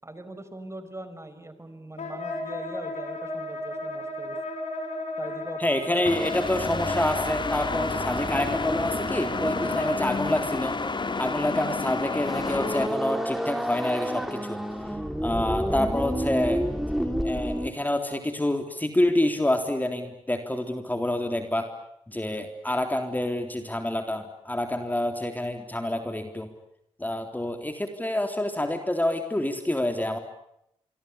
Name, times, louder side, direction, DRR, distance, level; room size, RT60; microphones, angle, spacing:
voice 1, 0.0-4.4 5.2-6.5, right 2 dB, 20° right, 10 dB, 5.0 m, -42 dB
Wind instrument woodwind instrument, 2.0-10.2, left 1 dB, 65° left, 6.5 m, -34 dB
voice 2, 5.6-10.8 11.2-14.6 15.2-16.6 17.2-21.7 22.1-26.5 27.0-30.2, left 1 dB, 15° left, 6 dB, 3.6 m, -27 dB
sound 1, 6.1-12.9, left 3 dB, 40° left, 2.6 m, -30 dB
sound 2, 12.3-17.7, equal, ahead, 3.5 m, -29 dB
25.5 x 24.5 x 8.4 m, 0.78 s
supercardioid pair, 45°, 13 cm